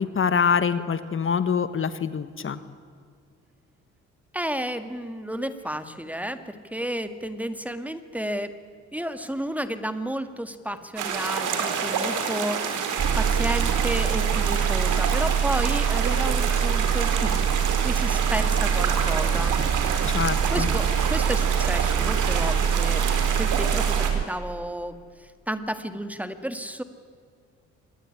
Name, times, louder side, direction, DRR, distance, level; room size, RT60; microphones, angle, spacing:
voice 1, 0.0-2.6 20.1-20.7, left 6 dB, 45° left, 13 dB, 1.3 m, -25 dB
voice 2, 4.3-8.5 8.9-12.7 13.1-17.5 17.8-19.6 20.1-23.0 23.4-25.0 25.5-26.8, equal, 5° right, 10 dB, 2.0 m, -32 dB
sound 1, 11.0-24.1, right 6 dB, 80° right, 4.3 m, -28 dB
sound 2, 13.0-24.2, right 8 dB, 35° right, 0.7 m, -24 dB
25.0 x 20.0 x 9.9 m, 2.1 s
cardioid pair, 90°, 30 cm